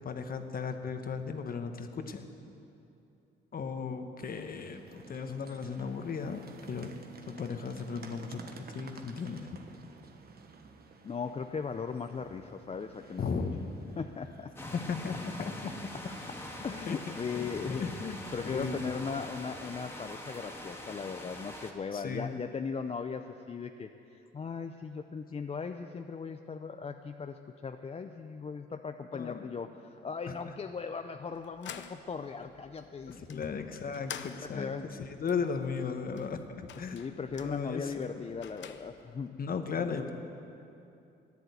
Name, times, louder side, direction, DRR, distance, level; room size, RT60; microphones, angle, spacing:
voice 1, 0.0-2.2 3.5-7.0 7.3-9.6 13.2-13.6 14.9-15.7 16.9-17.0 17.3-17.5 17.8-18.2 18.4-19.0 21.9-22.4 29.1-29.4 30.3-30.5 33.2-37.0 37.4-38.2 39.4-40.1, left 5 dB, 45° left, 7 dB, 1.3 m, -36 dB
sound 1, 4.2-18.9, right 4 dB, 50° right, 1.3 m, -53 dB
voice 2, 11.0-13.2 14.0-14.7 16.6-17.9 18.3-33.4 34.4-34.9 36.9-39.4, left 5 dB, 30° left, 6 dB, 0.5 m, -38 dB
sound 2, 14.6-21.7, left 1 dB, 10° left, 1.8 m, -43 dB
sound 3, 31.2-39.3, left 9 dB, 65° left, 0.8 m, -49 dB
14.0 x 10.5 x 8.1 m, 2.7 s
cardioid pair, 90°, 20 cm